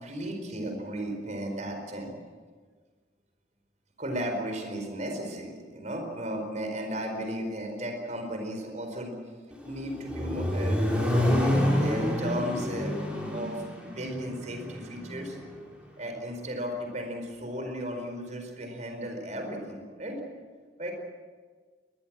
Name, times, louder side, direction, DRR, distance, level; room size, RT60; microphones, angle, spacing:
voice 1, 0.0-2.1 4.0-9.1 9.6-12.9 13.3-15.4 16.0-20.2 20.8-20.9, equal, 45° right, 4 dB, 4.7 m, -35 dB
Accelerating revving vroom, 9.5-15.5, left 1 dB, 5° right, 5.8 m, -28 dB
23.0 x 20.0 x 7.6 m, 1.5 s
head